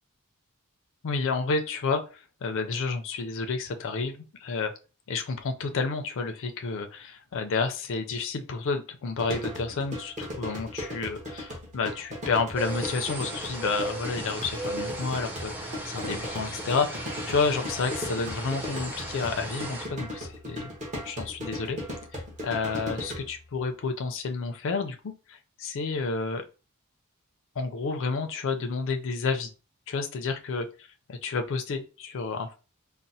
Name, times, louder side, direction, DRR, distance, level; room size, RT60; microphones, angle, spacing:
voice 1, 1.0-4.7 5.1-20.7 21.0-21.8 22.1-26.4 27.6-29.5 29.9-30.7 31.1-32.6, left 4 dB, 60° left, 6 dB, 0.4 m, -30 dB
sound 1, 9.2-23.5, left 1 dB, 35° right, 1.0 m, -38 dB
sound 2, 12.5-19.9, right 1 dB, 10° right, 0.6 m, -36 dB
4.1 x 2.1 x 2.6 m, 0.33 s
head